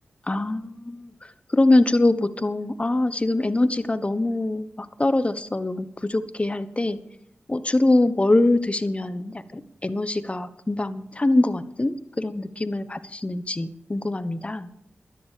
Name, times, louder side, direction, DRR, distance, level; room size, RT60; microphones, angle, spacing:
voice 1, 0.3-7.0 7.5-14.7, left 2 dB, 30° left, 13 dB, 1.1 m, -23 dB
12.5 x 10.5 x 6.7 m, 0.72 s
cardioid pair, 50°, 4 cm